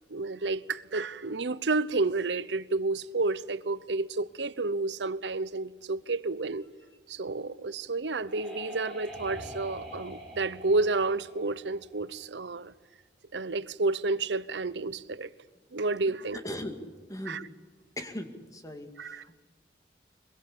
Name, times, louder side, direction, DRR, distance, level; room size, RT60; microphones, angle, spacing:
voice 1, 0.1-6.7 7.1-12.7 13.3-15.3 15.7-16.4 17.3-17.4 19.0-19.2, right 3 dB, 85° right, 0.9 m, -30 dB
sound 1, 7.7-12.3, equal, 5° left, 4.2 m, -45 dB
voice 2, 16.3-17.5 18.0-19.4, left 1 dB, 20° left, 2.2 m, -39 dB
23.5 x 22.5 x 8.6 m
head